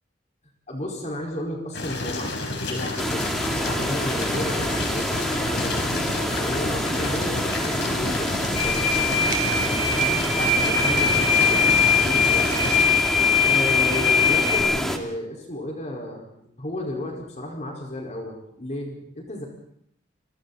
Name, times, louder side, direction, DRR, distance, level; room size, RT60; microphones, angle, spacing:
voice 1, 0.7-3.3 3.6-9.2 10.0-12.6 13.4-19.4, left 1 dB, 40° left, -1 dB, 4.9 m, -33 dB
sound 1, 1.7-12.8, left 2 dB, 70° left, 4.6 m, -30 dB
sound 2, 3.0-15.0, equal, ahead, 2.2 m, -27 dB
sound 3, 8.5-14.6, left 5 dB, 50° right, 4.2 m, -21 dB
30.0 x 23.0 x 4.2 m, 0.71 s
head